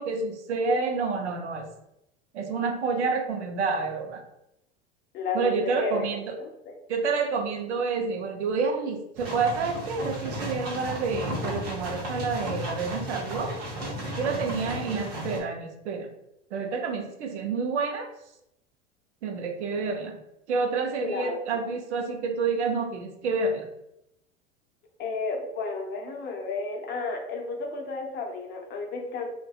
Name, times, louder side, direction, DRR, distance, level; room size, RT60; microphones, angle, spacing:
voice 1, 0.0-1.7 2.3-4.2 5.3-6.4 6.9-13.5 14.2-16.1 16.5-18.1 19.2-20.2 20.5-23.7, right 4 dB, 80° right, 5 dB, 0.5 m, -28 dB
voice 2, 5.1-6.1 6.4-6.7 21.0-21.6 25.0-29.3, left 3 dB, 30° left, 2 dB, 0.5 m, -32 dB
sound 1, 9.2-15.4, equal, 50° right, 0.9 m, -34 dB
2.5 x 2.1 x 2.3 m, 0.84 s
hypercardioid pair, 85°, 34 cm